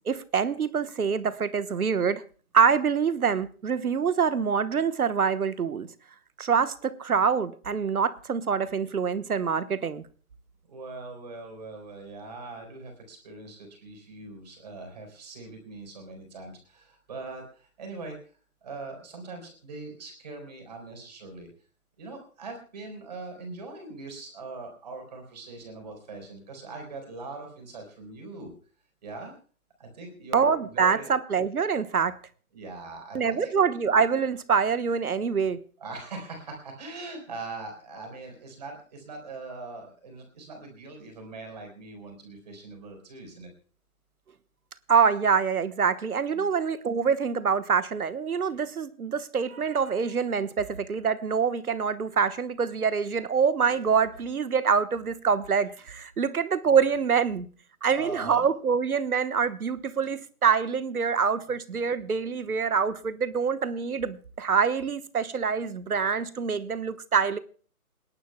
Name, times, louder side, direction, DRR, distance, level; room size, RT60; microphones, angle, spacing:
voice 1, 0.1-2.2 2.5-5.9 6.4-10.0 30.3-32.2 33.1-35.6 44.9-57.5 57.8-67.4, right 6 dB, 75° right, 1.2 m, -25 dB
voice 2, 10.7-18.2 18.6-21.5 22.0-28.5 29.0-29.3 29.8-31.1 32.5-33.8 35.8-43.5 46.3-46.5 57.9-58.5, right 3 dB, 30° right, 4.3 m, -41 dB
28.5 x 11.5 x 2.2 m
hypercardioid pair, 170°, 44 cm